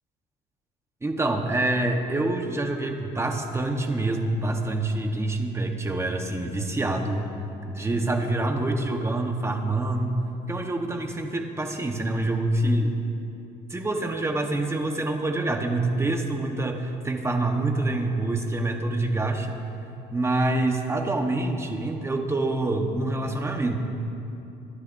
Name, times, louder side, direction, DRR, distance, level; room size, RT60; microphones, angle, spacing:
voice 1, 1.0-7.2 7.7-10.2 10.5-12.9 13.7-19.6 20.1-23.8, right 2 dB, 15° right, 4 dB, 1.2 m, -26 dB
23.0 x 12.0 x 2.7 m, 2.8 s
cardioid pair, 110°, 17 cm